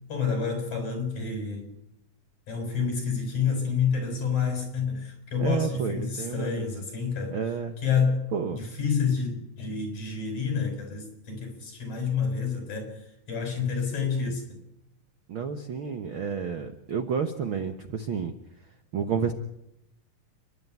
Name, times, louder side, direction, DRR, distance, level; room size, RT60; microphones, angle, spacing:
voice 1, 0.1-1.7 2.5-7.4 7.8-8.2 8.5-14.6, left 6 dB, 55° left, 4 dB, 7.5 m, -29 dB
voice 2, 5.4-6.7 7.3-7.8 8.3-8.6 14.0-14.3 15.3-18.3 18.9-19.3, right 6 dB, 65° right, 8 dB, 1.3 m, -30 dB
29.0 x 12.0 x 9.3 m, 0.80 s
omnidirectional pair, 3.9 m